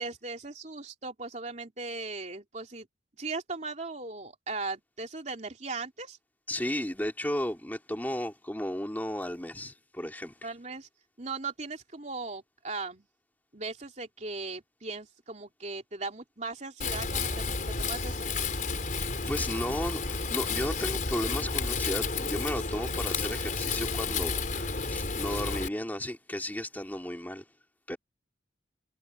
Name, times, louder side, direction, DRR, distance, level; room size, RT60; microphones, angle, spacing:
voice 1, 0.0-2.9 3.2-6.2 10.4-10.9 11.2-13.1 13.5-18.3, right 3 dB, 40° right, 3.1 m, -38 dB
voice 2, 6.5-10.5 19.0-27.4 27.9-28.0, left 1 dB, 10° left, 2.4 m, -34 dB
Wind, 16.8-25.7, left 4 dB, 45° left, 4.8 m, -31 dB
head